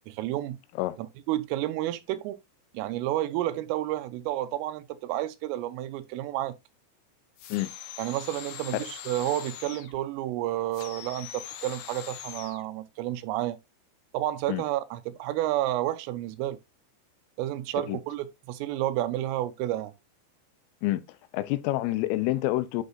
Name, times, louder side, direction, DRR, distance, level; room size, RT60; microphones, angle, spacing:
voice 1, 0.1-0.6 1.0-2.4 2.7-6.5 8.0-13.6 14.1-16.6 17.4-19.9, right 14 dB, 85° right, 3.4 m, -30 dB
sound 1, 7.4-10.0 10.7-12.6, left 10 dB, 70° left, 2.4 m, -42 dB
voice 2, 21.3-22.8, left 17 dB, 90° left, 3.4 m, -27 dB
9.8 x 6.3 x 2.6 m
omnidirectional pair, 5.7 m